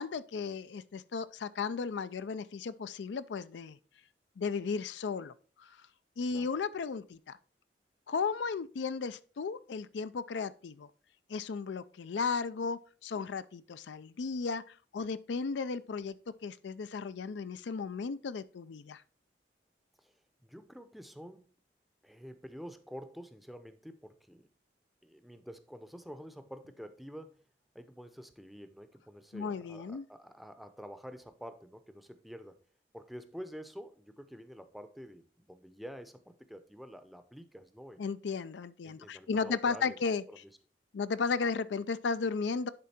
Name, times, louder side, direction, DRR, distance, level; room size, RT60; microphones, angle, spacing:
voice 1, 0.0-3.8 4.4-5.3 5.6-5.8 6.2-7.4 8.1-10.9 11.3-16.2 16.4-19.0 29.3-30.1 38.0-40.2 40.9-42.7, left 5 dB, 85° left, 0.4 m, -35 dB
voice 2, 20.4-21.5 22.0-24.5 25.0-27.4 27.7-32.6 32.9-38.0 38.8-40.0 40.3-40.5, equal, ahead, 0.6 m, -48 dB
10.5 x 3.7 x 4.2 m
head